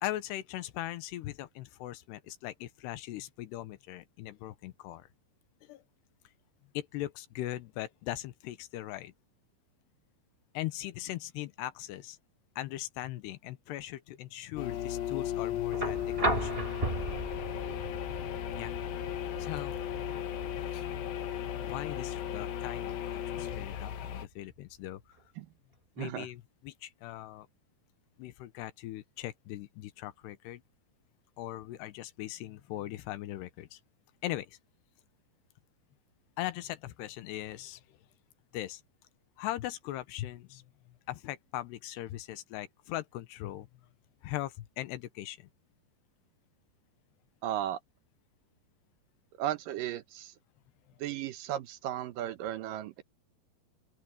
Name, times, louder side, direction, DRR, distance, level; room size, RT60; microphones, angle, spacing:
voice 1, 0.0-5.1 5.6-5.8 6.7-9.1 10.5-12.2 12.6-16.6 18.5-18.7 19.4-19.8 20.7-20.8 21.6-25.0 26.0-27.5 28.2-30.6 31.4-33.8 34.2-34.6 36.4-38.0 38.5-38.8 39.4-40.6 41.1-43.7 44.2-45.5, left 14 dB, 85° left, 3.1 m, -40 dB
sound 1, 14.6-24.3, left 10 dB, 65° left, 3.1 m, -36 dB
sound 2, 15.7-23.8 25.2-25.3, right 2 dB, 15° right, 3.2 m, -37 dB
voice 2, 26.0-26.3 47.4-47.8 49.4-50.3 51.0-53.0, right 12 dB, 70° right, 2.2 m, -35 dB
open air
omnidirectional pair, 4.8 m